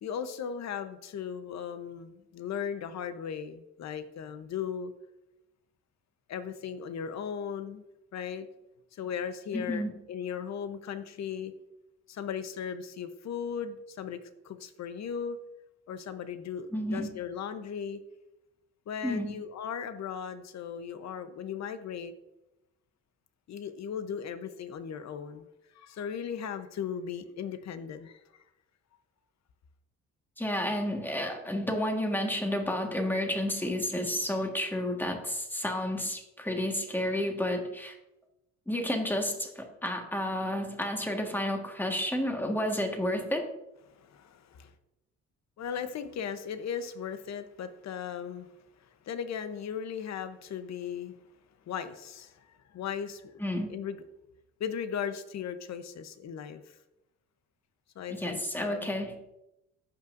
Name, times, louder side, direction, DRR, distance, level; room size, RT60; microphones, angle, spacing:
voice 1, 0.0-4.9 6.3-7.8 8.1-8.5 8.9-9.8 10.1-11.5 12.1-15.4 15.9-18.0 18.9-22.1 23.5-25.5 25.7-28.2 43.9-44.7 45.6-48.5 48.8-51.1 51.7-53.4 53.7-54.0 54.6-56.8 57.9-58.9, left 7 dB, 60° left, 10 dB, 0.9 m, -37 dB
voice 2, 9.5-9.9 16.7-17.1 19.0-19.3 30.4-38.0 38.7-43.5 53.4-53.7 58.1-59.2, left 1 dB, 5° left, 3 dB, 1.6 m, -31 dB
14.5 x 5.6 x 2.6 m, 0.90 s
cardioid pair, 90°, 30 cm